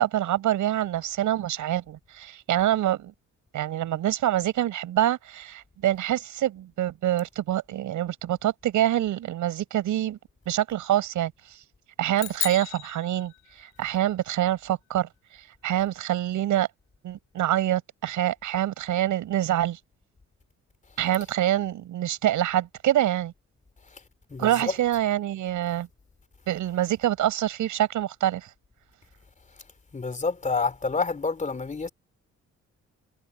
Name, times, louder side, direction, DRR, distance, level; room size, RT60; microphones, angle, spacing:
voice 1, 0.0-3.1 3.5-10.2 10.5-11.3 12.0-13.3 13.6-15.1 15.6-16.7 17.0-19.8 21.0-23.3 24.4-25.9 26.5-28.5, right 12 dB, 80° right, 5.8 m, -25 dB
sound 1, 12.2-13.8, left 12 dB, 85° left, 4.4 m, -34 dB
voice 2, 29.9-31.9, left 4 dB, 25° left, 3.2 m, -28 dB
cardioid pair, 90°, 30 cm